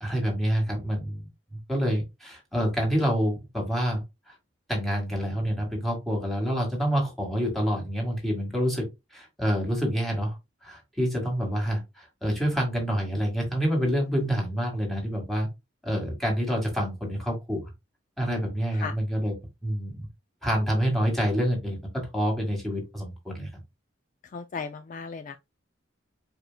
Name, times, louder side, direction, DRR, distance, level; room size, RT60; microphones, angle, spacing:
voice 1, 0.0-1.3 1.7-4.3 4.7-8.9 9.1-10.4 10.6-15.5 15.8-17.6 18.2-19.3 19.6-20.1 20.4-23.5, equal, ahead, 1.8 m, -27 dB
voice 2, 24.2-25.4, left 5 dB, 40° left, 0.3 m, -36 dB
4.9 x 4.5 x 2.2 m
head